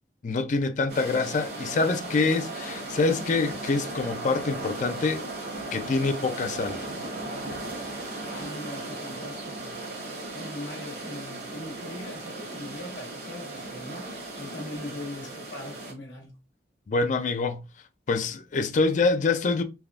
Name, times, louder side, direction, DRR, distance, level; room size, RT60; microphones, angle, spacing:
voice 1, 0.2-5.3 5.7-6.9 16.9-17.6 18.1-19.6, left 3 dB, 45° left, 0.4 m, -25 dB
sound 1, 0.9-15.9, right 2 dB, 60° right, 1.1 m, -37 dB
voice 2, 2.0-2.3 8.3-9.8 10.3-14.1 14.4-16.3, left 1 dB, 85° left, 1.0 m, -40 dB
3.4 x 2.3 x 2.3 m
head